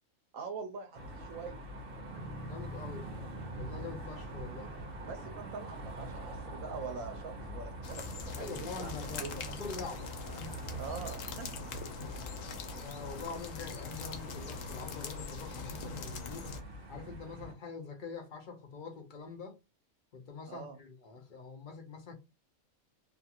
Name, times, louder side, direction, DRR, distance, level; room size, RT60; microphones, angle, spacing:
voice 1, 0.3-1.6 5.0-8.9 9.2-9.3 10.8-11.6 20.5-20.8, right 5 dB, 75° right, 1.0 m, -43 dB
sound 1, 0.9-17.5, right 1 dB, 45° right, 0.9 m, -44 dB
voice 2, 2.5-3.1 3.6-4.7 8.4-10.6 11.9-12.2 12.7-16.5 16.9-19.6 20.1-22.1, left 4 dB, 55° left, 0.6 m, -45 dB
sound 2, 7.8-16.6, left 5 dB, 75° left, 1.0 m, -43 dB
2.6 x 2.4 x 2.8 m
omnidirectional pair, 1.4 m